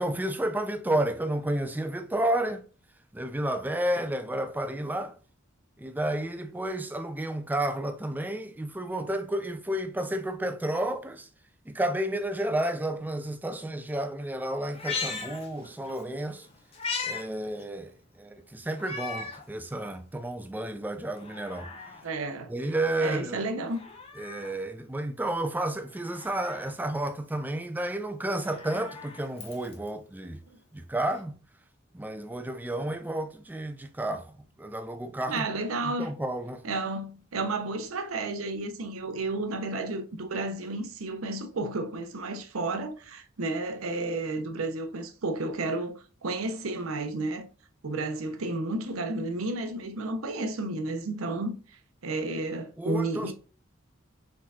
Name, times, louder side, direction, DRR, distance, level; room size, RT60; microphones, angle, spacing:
voice 1, 0.0-2.6 3.1-5.2 5.8-11.3 11.7-16.5 17.0-21.7 22.5-23.4 24.2-30.4 30.7-31.4 31.9-35.5 35.8-36.6 52.8-53.3, right 1 dB, 10° right, 0.4 m, -31 dB
Meow, 14.7-16.0 16.4-17.2 17.6-17.7 18.8-19.4 20.0-20.1 21.0-22.0 23.6-24.6 25.9-26.7 28.2-29.9 31.1-31.2, left 4 dB, 30° left, 0.8 m, -38 dB
voice 2, 22.0-22.5 23.0-23.8 30.5-30.6 35.3-36.1 36.6-47.5 47.8-51.6 52.0-53.3, right 2 dB, 85° right, 0.7 m, -32 dB
4.3 x 3.8 x 2.3 m
head